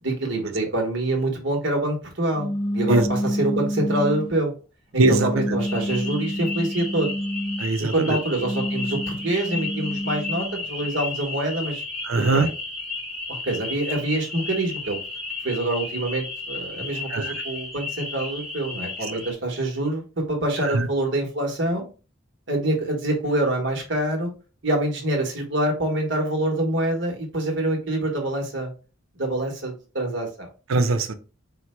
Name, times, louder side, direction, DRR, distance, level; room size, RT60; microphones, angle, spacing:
voice 1, 0.0-4.6 4.9-7.1 7.9-11.8 12.2-12.5 13.3-15.0 15.4-21.9 22.5-24.3 24.6-28.7 29.2-30.5, right 1 dB, 60° right, 1.2 m, -26 dB
sound 1, 2.3-4.4 5.0-7.7 8.3-10.6, equal, 25° left, 0.4 m, -28 dB
voice 2, 5.0-5.4 7.6-8.2 12.1-12.5 17.1-17.3 30.7-31.1, right 3 dB, 90° right, 0.6 m, -21 dB
sound 2, 5.6-19.3, left 3 dB, ahead, 0.9 m, -34 dB
4.5 x 2.2 x 4.2 m
head